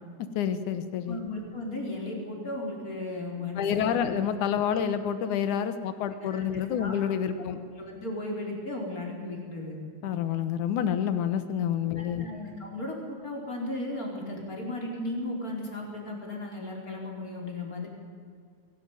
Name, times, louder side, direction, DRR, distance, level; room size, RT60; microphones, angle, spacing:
voice 1, 0.4-1.2 3.6-7.6 10.0-12.3, left 8 dB, 85° left, 10 dB, 2.7 m, -28 dB
voice 2, 1.1-4.1 6.2-6.9 7.3-7.4 7.8-9.8 12.2-17.9, left 2 dB, 25° left, 0 dB, 5.0 m, -35 dB
23.0 x 18.5 x 9.2 m, 2.2 s
omnidirectional pair, 3.4 m